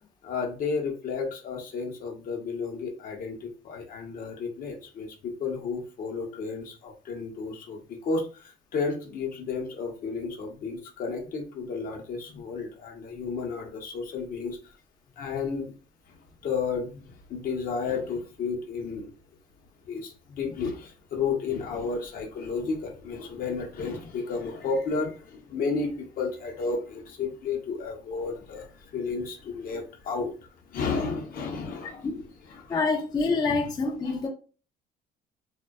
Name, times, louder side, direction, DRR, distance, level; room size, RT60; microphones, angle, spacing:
voice 1, 0.2-14.6 15.2-15.7 16.4-19.1 19.9-30.3 30.7-32.1 32.5-32.8, left 4 dB, 55° left, 0.7 m, -32 dB
voice 2, 32.7-34.3, left 3 dB, 25° left, 0.4 m, -26 dB
2.5 x 2.1 x 2.2 m
cardioid pair, 110°, 17 cm